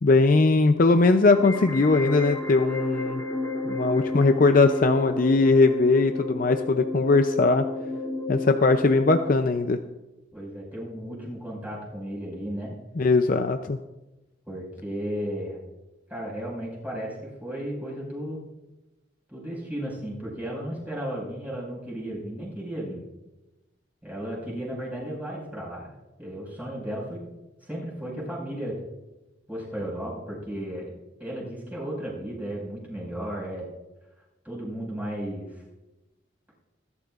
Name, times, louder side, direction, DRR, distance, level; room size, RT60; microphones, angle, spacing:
voice 1, 0.0-3.2 3.6-7.6 8.3-9.8 13.0-13.8, left 3 dB, 45° left, 7 dB, 0.5 m, -20 dB
sound 1, 1.3-9.3, left 2 dB, 20° left, 2.9 m, -32 dB
voice 2, 10.3-12.7 14.5-15.6 16.1-18.4 19.3-23.0 24.0-25.9 26.2-27.2 27.6-28.8 29.5-30.9 31.2-33.7 34.4-35.6, equal, 10° right, -4 dB, 5.4 m, -34 dB
20.5 x 12.0 x 2.5 m, 1.0 s
head